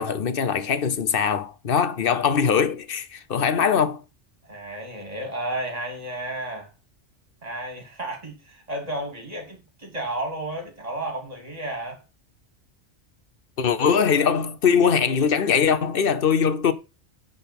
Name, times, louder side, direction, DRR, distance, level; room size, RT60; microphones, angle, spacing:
voice 1, 0.0-4.0 13.6-16.7, left 7 dB, 55° left, 1.0 m, -21 dB
voice 2, 4.4-6.7 7.4-12.0, right 1 dB, 35° right, 3.1 m, -32 dB
10.0 x 4.1 x 5.4 m
omnidirectional pair, 1.2 m